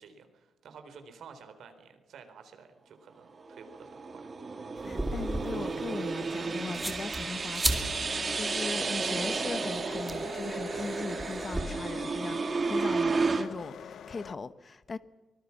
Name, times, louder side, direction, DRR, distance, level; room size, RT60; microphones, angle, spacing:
voice 1, 0.0-4.3, right 6 dB, 75° right, 3.9 m, -51 dB
sound 1, 3.3-13.4, right 4 dB, 30° right, 1.8 m, -32 dB
voice 2, 4.8-15.0, left 4 dB, 30° left, 1.0 m, -39 dB
sound 2, 4.8-11.6, right 1 dB, 10° right, 2.4 m, -37 dB
sound 3, 7.7-14.4, left 8 dB, 65° left, 0.8 m, -45 dB
24.5 x 20.0 x 7.2 m
wide cardioid pair, 180°, 0 cm